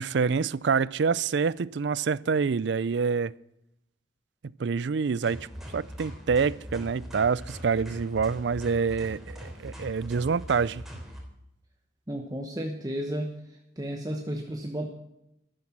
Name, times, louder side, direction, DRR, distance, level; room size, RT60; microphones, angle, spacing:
voice 1, 0.0-3.3 4.4-5.4 5.7-10.8, right 5 dB, 65° right, 0.4 m, -26 dB
sound 1, 5.2-11.2, equal, ahead, 3.3 m, -41 dB
voice 2, 12.1-13.4 13.8-14.9, equal, 20° right, 1.0 m, -33 dB
13.0 x 13.0 x 6.0 m
head